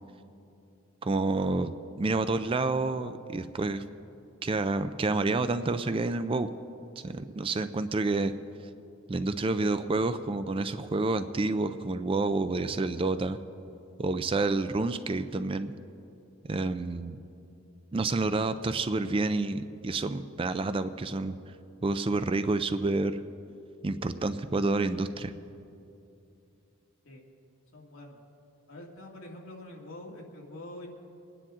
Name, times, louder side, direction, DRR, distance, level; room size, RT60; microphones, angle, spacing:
voice 1, 1.0-3.8 4.4-6.5 7.0-8.3 9.1-13.4 14.0-15.7 16.5-17.2 17.9-21.4 21.8-23.2 23.8-25.3, right 3 dB, 25° right, 11 dB, 0.4 m, -29 dB
voice 2, 27.7-28.2 28.7-30.9, left 1 dB, 65° left, -1 dB, 2.1 m, -45 dB
25.5 x 10.0 x 3.7 m, 2.7 s
head